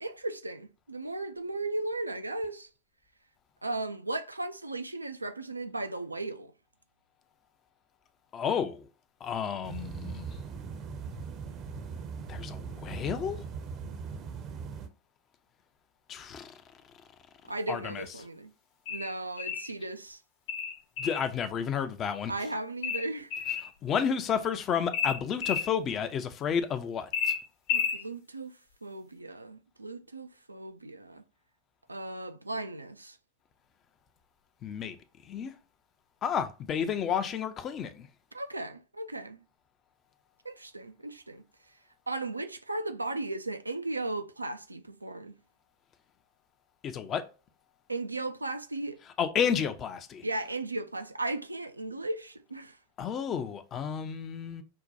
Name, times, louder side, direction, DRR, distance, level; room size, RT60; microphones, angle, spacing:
voice 1, 0.0-2.7 3.6-6.5 17.5-18.5 18.9-20.2 22.3-23.5 27.7-31.2 31.9-33.2 38.3-39.4 40.4-41.4 42.1-45.4 47.9-49.0 50.2-52.8, right 2 dB, 85° right, 0.3 m, -36 dB
voice 2, 8.3-8.9 9.2-10.4 12.3-13.4 16.1-16.6 17.7-18.0 21.0-22.3 23.8-27.3 34.6-35.0 35.3-35.5 36.2-38.1 46.8-47.2 49.2-50.2 53.0-54.6, left 7 dB, 30° left, 0.5 m, -31 dB
sound 1, 9.6-14.9, right 5 dB, 35° right, 0.6 m, -40 dB
sound 2, 18.9-19.7 20.5-21.3 22.8-23.7 24.9-25.7 27.1-28.0, left 7 dB, 55° left, 1.0 m, -31 dB
5.4 x 2.2 x 2.6 m
figure-of-eight pair, 90°, 0 cm